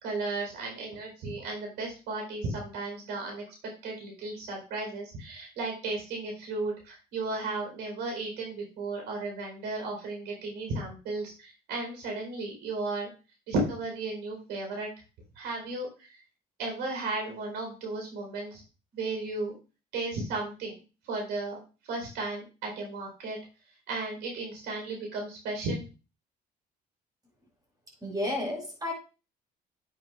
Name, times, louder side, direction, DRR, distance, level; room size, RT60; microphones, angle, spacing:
voice 1, 0.0-3.4 3.8-13.1 13.5-14.9 15.4-15.9 16.6-18.6 18.9-19.5 19.9-20.7 21.1-21.6 21.9-23.4 23.9-25.8, right 2 dB, 90° right, 1 dB, 4.4 m, -34 dB
voice 2, 28.0-28.9, left 1 dB, 20° right, 0 dB, 5.2 m, -31 dB
9.6 x 8.7 x 2.5 m, 0.32 s
cardioid pair, 110°, 17 cm